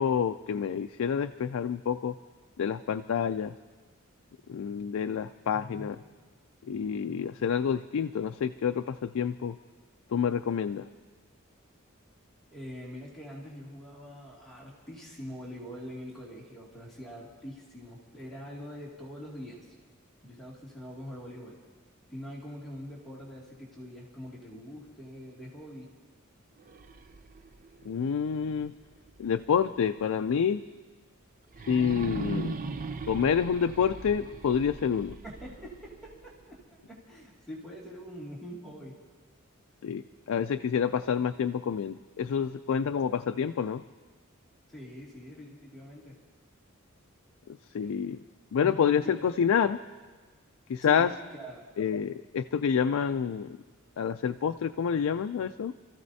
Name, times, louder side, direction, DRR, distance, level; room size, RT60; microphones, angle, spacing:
voice 1, 0.0-2.1 2.6-3.5 4.5-6.0 6.7-9.6 10.1-10.8 27.9-28.7 29.2-30.6 31.7-32.6 33.1-35.1 39.8-40.0 40.3-43.8 47.5-48.2 48.5-49.8 50.7-51.1 51.8-53.6 54.0-55.7, left 7 dB, 75° left, 9 dB, 0.4 m, -28 dB
voice 2, 5.5-5.9 12.5-19.6 20.2-21.6 22.1-25.9 35.2-36.6 36.9-38.9 44.7-46.2 47.8-47.9 48.6-49.1 50.8-51.7, equal, ahead, -7 dB, 2.3 m, -44 dB
sound 1, 26.6-29.6 30.0-30.1 31.5-36.6, right 3 dB, 40° right, 0.5 m, -40 dB
27.5 x 14.5 x 2.7 m, 1.4 s
head